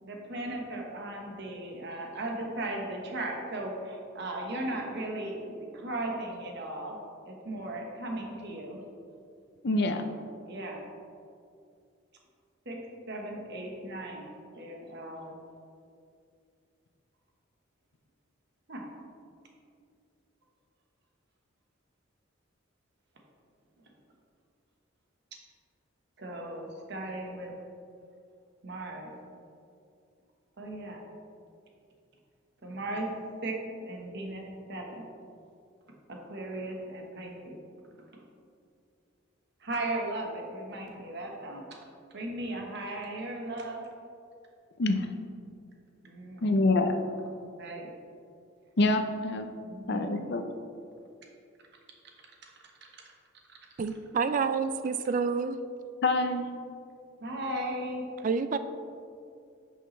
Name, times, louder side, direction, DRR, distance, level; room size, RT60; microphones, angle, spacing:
voice 1, 0.0-7.0 7.3-8.8 10.5-10.8 12.6-12.8 13.1-14.3 14.5-15.3 18.7-18.8 26.2-27.5 28.6-29.1 30.6-31.0 32.6-33.1 33.4-35.1 36.1-37.6 39.6-41.7 42.1-43.8 46.0-46.7 47.6-47.9 49.6-50.2 52.4-52.5 52.8-53.0 53.5-53.6 57.2-58.1, right 1 dB, 60° right, 1 dB, 1.2 m, -37 dB
voice 2, 9.6-10.0 44.8-45.1 46.4-46.9 48.8-49.5 49.9-50.4 56.0-56.5, left 2 dB, 55° left, 7 dB, 0.6 m, -26 dB
voice 3, 53.8-55.6 58.2-58.6, right 5 dB, 40° right, 11 dB, 0.3 m, -28 dB
9.9 x 5.5 x 3.2 m, 2.4 s
head